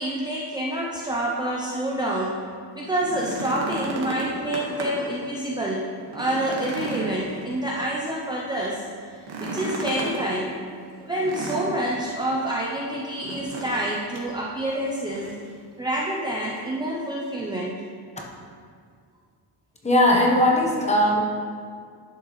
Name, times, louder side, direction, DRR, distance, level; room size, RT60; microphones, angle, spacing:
voice 1, 0.0-2.3 2.7-5.9 6.1-8.8 9.4-10.5 11.0-15.3 15.8-17.7, right 1 dB, 10° right, -4 dB, 0.6 m, -27 dB
sound 1, 2.9-5.1 5.5-5.6 6.0-7.9 9.2-10.2 11.1-12.1 13.2-13.9 14.1-14.3 14.9-15.4 16.6-16.7, right 2 dB, 80° right, 1.7 m, -33 dB
voice 2, 19.8-21.2, left 1 dB, 15° left, -1 dB, 1.0 m, -19 dB
11.0 x 6.7 x 3.1 m, 2.1 s
cardioid pair, 160°, 43 cm